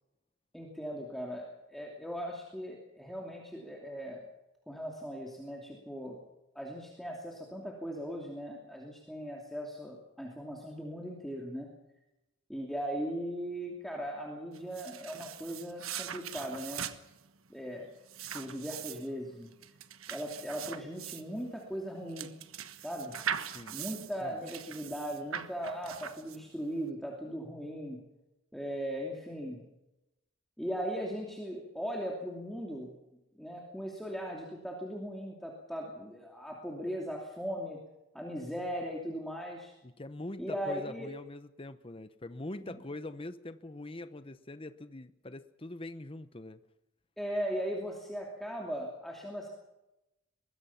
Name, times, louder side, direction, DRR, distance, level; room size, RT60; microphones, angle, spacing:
voice 1, 0.5-4.2 4.7-6.2 6.5-11.7 12.5-16.9 17.5-17.9 18.3-19.5 20.1-22.3 22.8-23.1 23.7-28.0 28.5-29.6 30.6-32.9 33.3-37.8 38.1-39.7 40.4-41.1 42.6-42.8 47.2-49.5, equal, ahead, -1 dB, 2.7 m, -38 dB
sound 1, 14.5-26.7, right 8 dB, 90° right, 1.4 m, -41 dB
voice 2, 39.8-46.6, left 2 dB, 25° left, 12 dB, 0.9 m, -43 dB
23.5 x 21.0 x 5.8 m, 0.96 s
head